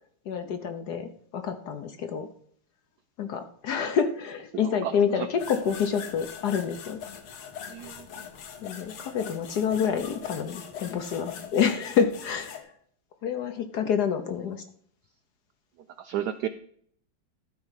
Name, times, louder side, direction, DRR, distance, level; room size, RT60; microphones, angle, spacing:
voice 1, 0.3-2.3 3.2-7.0 8.6-12.7 13.2-14.6, left 7 dB, 60° left, 8 dB, 1.1 m, -28 dB
voice 2, 4.6-5.3 7.7-8.1 16.0-16.5, right 11 dB, 80° right, 10 dB, 0.9 m, -33 dB
sound 1, 5.4-12.6, left 7 dB, 85° left, 2.1 m, -41 dB
12.5 x 4.8 x 5.6 m, 0.62 s
omnidirectional pair, 2.3 m